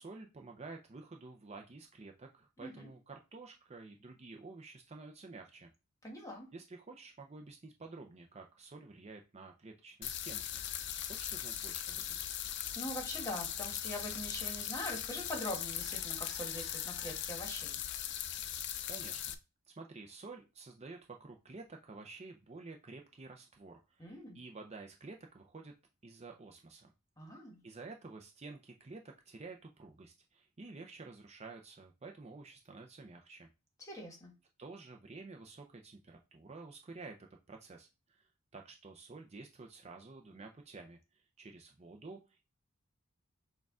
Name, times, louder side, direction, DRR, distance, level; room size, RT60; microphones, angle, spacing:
voice 1, 0.0-5.7 6.5-10.6 11.1-12.2 18.9-19.4 19.7-25.7 26.0-26.9 27.6-33.5 34.6-37.2 37.5-42.5, right 3 dB, 30° right, 3 dB, 0.5 m, -51 dB
voice 2, 2.6-2.9 6.0-6.5 12.7-17.8 24.0-24.4 27.2-27.6 33.8-34.3, left 1 dB, 15° left, 0 dB, 1.3 m, -43 dB
sound 1, 10.0-19.3, left 10 dB, 55° left, 0.4 m, -39 dB
6.3 x 2.3 x 3.6 m, 0.28 s
head